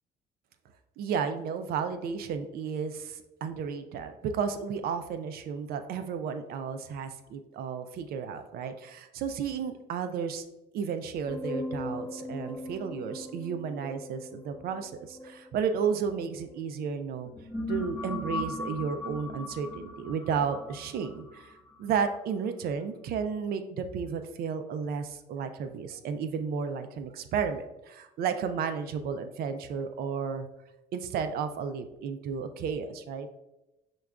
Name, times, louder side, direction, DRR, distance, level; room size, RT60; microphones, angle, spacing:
voice 1, 1.0-10.4 10.7-17.3 17.7-21.5 21.8-30.5 30.9-33.3, right 6 dB, 65° right, 8 dB, 0.4 m, -33 dB
sound 1, 11.2-16.5 17.1-22.1, left 2 dB, 10° left, 1.2 m, -39 dB
6.0 x 2.3 x 2.3 m, 0.96 s
cardioid pair, 110°, 17 cm